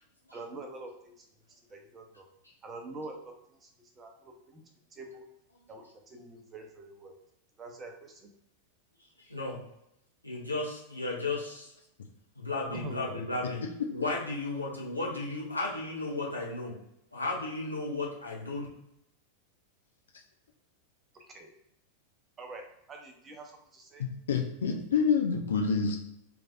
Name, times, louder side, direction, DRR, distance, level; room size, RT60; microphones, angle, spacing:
voice 1, 0.3-1.3 1.7-2.3 2.6-4.6 4.9-5.3 5.7-7.2 7.6-8.3 12.7-13.2 21.1-21.5 22.4-24.0, right 2 dB, 25° right, 2 dB, 0.7 m, -45 dB
voice 2, 9.2-9.6 10.2-11.7 12.3-13.6 13.9-16.8 17.1-18.7, left 2 dB, 85° left, -3 dB, 0.9 m, -34 dB
voice 3, 24.0-26.0, left 5 dB, 65° left, 3 dB, 0.4 m, -27 dB
3.3 x 3.3 x 2.5 m, 0.79 s
figure-of-eight pair, 90°, 0 cm